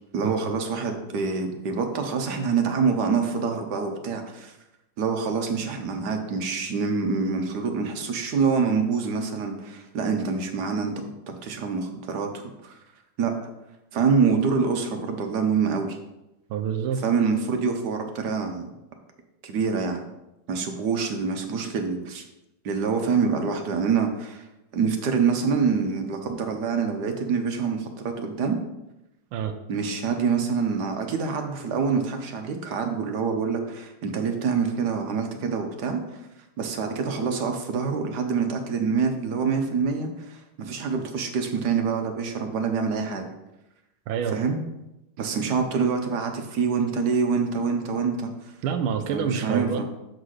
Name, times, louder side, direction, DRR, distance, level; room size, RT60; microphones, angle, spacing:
voice 1, 0.1-4.6 5.0-10.9 11.4-12.8 13.2-13.3 13.9-16.0 17.0-18.7 19.4-20.0 20.5-22.2 22.6-24.5 24.7-28.6 29.7-36.2 36.6-43.3 44.3-44.6 45.2-48.5 49.1-49.9, right 5 dB, 60° right, 5 dB, 1.2 m, -26 dB
voice 2, 16.5-17.0 29.3-29.6 44.1-44.4 48.6-49.9, right 7 dB, 85° right, 6 dB, 1.5 m, -27 dB
7.4 x 4.0 x 6.4 m, 0.93 s
omnidirectional pair, 2.3 m